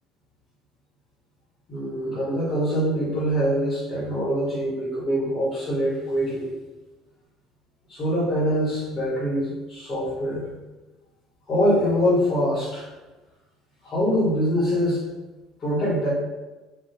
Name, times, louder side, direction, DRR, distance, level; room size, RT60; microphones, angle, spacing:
voice 1, 1.7-6.5 7.9-10.5 11.5-12.9 13.8-15.0 15.6-16.1, equal, 30° left, -9 dB, 1.2 m, -24 dB
3.4 x 2.3 x 4.3 m, 1.1 s
cardioid pair, 165°, 0 cm